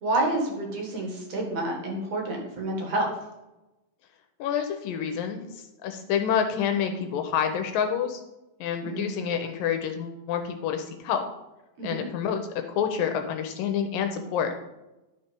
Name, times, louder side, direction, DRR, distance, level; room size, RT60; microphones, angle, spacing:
voice 1, 0.0-3.1 8.8-9.1 11.8-12.0, right 2 dB, 50° right, 0 dB, 2.5 m, -29 dB
voice 2, 4.4-5.5 5.8-8.2 8.6-11.2 11.8-12.4 12.7-14.5, left 8 dB, 80° left, 6 dB, 2.3 m, -28 dB
12.0 x 4.2 x 5.2 m, 1.0 s
omnidirectional pair, 4.2 m